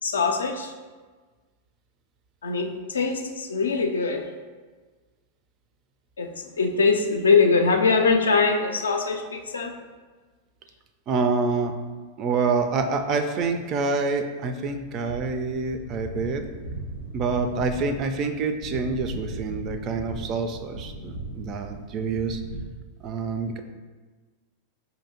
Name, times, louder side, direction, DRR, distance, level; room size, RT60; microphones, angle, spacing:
voice 1, 0.0-0.7 2.4-4.3 6.2-9.7, left 4 dB, 70° left, 4 dB, 0.4 m, -22 dB
voice 2, 11.1-11.7 12.2-16.4 17.1-22.4 23.0-23.6, right 4 dB, 35° right, 7 dB, 0.3 m, -27 dB
sound 1, 15.0-22.7, right 1 dB, 80° right, 0.6 m, -37 dB
4.8 x 2.7 x 2.8 m, 1.4 s
figure-of-eight pair, 90°, 0 cm